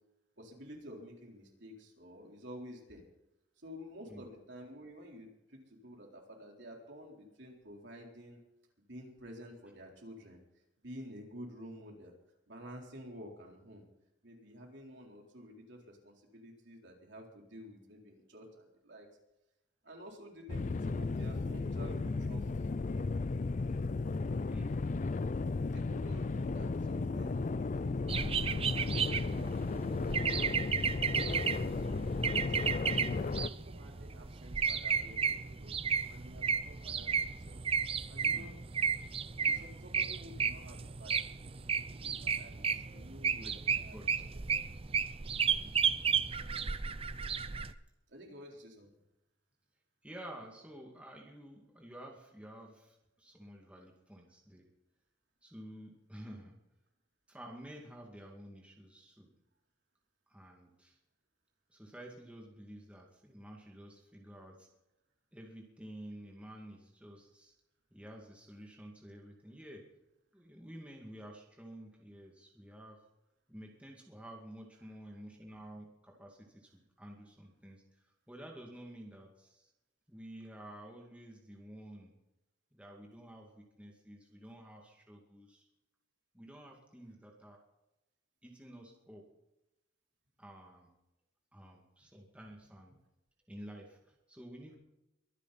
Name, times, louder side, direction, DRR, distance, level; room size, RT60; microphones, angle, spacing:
voice 1, 0.4-3.0 3.6-8.4 8.8-10.4 10.8-12.1 12.5-13.9 14.2-19.1 19.8-22.6 25.7-30.1 32.5-37.6 38.1-38.6 39.3-44.4 48.1-48.9 74.8-74.9, equal, 65° right, 0 dB, 4.0 m, -51 dB
sound 1, 20.5-33.5, left 3 dB, 40° left, 0.4 m, -34 dB
sound 2, 28.1-47.7, right 6 dB, 30° right, 0.6 m, -33 dB
voice 2, 43.9-44.2 45.5-45.7 50.0-54.7 55.4-56.6 57.3-59.3 60.3-61.0 61.7-64.7 65.3-67.5 67.9-69.9 70.3-73.0 73.5-77.8 78.3-79.7 80.1-82.2 82.7-85.7 86.3-87.6 88.4-89.3 90.4-90.9 91.5-93.0 93.5-94.8, right 1 dB, 5° right, 0 dB, 2.3 m, -51 dB
23.5 x 10.5 x 4.2 m, 0.93 s
head